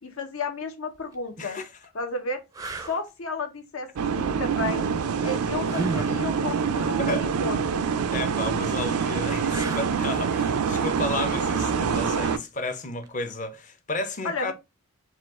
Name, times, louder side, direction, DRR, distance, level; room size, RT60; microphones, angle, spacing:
voice 1, 0.0-1.6 1.9-2.4 2.9-3.9 4.2-4.9 5.2-7.9 14.2-14.5, left 3 dB, 70° left, 0.9 m, -32 dB
sound 1, 0.9-1.1 1.8-1.9 2.5-3.0 5.6-6.2 9.4-10.1 13.0-13.2, right 3 dB, 15° right, 0.4 m, -33 dB
voice 2, 1.4-1.7 7.0-7.3 8.1-14.5, left 2 dB, 35° left, 0.7 m, -32 dB
sound 2, 4.0-12.4, right 6 dB, 90° right, 0.4 m, -26 dB
4.3 x 2.4 x 3.6 m
head